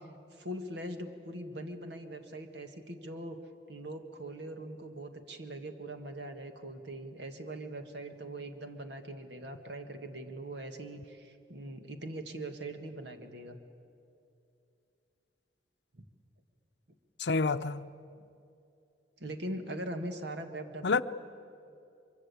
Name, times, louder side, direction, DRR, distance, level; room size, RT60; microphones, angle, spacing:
voice 1, 0.3-3.4 3.7-13.6 19.2-21.0, right 1 dB, 70° right, 1.9 m, -41 dB
voice 2, 17.2-17.8 20.8-21.0, left 4 dB, 70° left, 0.7 m, -28 dB
24.0 x 23.5 x 8.4 m
head